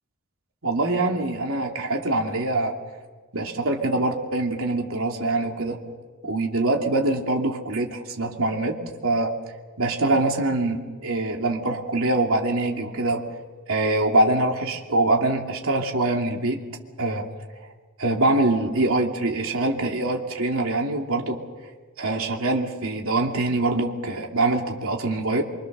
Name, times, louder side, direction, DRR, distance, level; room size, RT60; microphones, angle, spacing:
voice 1, 0.6-2.7 3.3-5.8 6.2-8.8 9.0-9.3 9.8-13.2 13.7-16.6 17.0-17.3 18.0-21.4 22.0-25.4, right 2 dB, 85° right, 1 dB, 2.8 m, -24 dB
26.5 x 25.5 x 6.8 m, 1.4 s
head